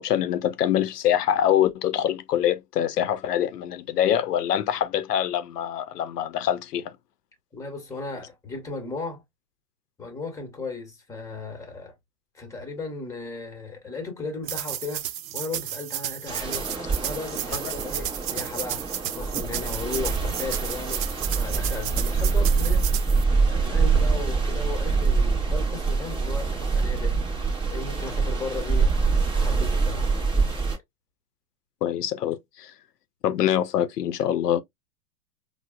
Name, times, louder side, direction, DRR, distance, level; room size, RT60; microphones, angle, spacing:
voice 1, 0.0-7.0 17.6-17.7 31.8-32.7 33.2-34.6, left 10 dB, 80° left, 0.6 m, -24 dB
voice 2, 7.5-9.2 10.0-11.9 12.3-15.0 15.3-21.1 21.3-22.9 23.4-27.1 27.7-28.9 29.3-30.1, left 3 dB, 5° left, 1.0 m, -36 dB
sound 1, 14.4-23.2, right 11 dB, 60° right, 0.6 m, -33 dB
sound 2, 16.3-30.8, right 4 dB, 10° right, 0.6 m, -25 dB
4.6 x 2.0 x 2.3 m
hypercardioid pair, 115°, 47 cm